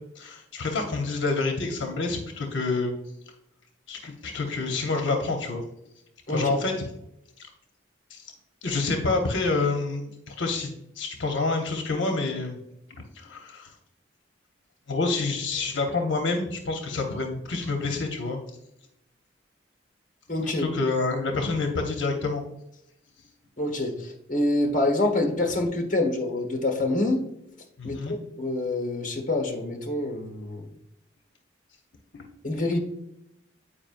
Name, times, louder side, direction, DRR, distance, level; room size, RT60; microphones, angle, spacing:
voice 1, 0.2-2.9 3.9-5.6 6.3-6.7 7.4-7.5 8.1-8.3 8.6-12.6 13.1-13.7 14.9-18.4 20.4-22.4 27.8-28.2 32.1-32.2, left 3 dB, 80° left, 3 dB, 0.8 m, -28 dB
voice 2, 20.3-20.7 23.6-27.2 27.8-30.6 32.4-32.8, left 2 dB, 45° left, 3 dB, 1.3 m, -26 dB
8.8 x 4.8 x 2.5 m, 0.83 s
head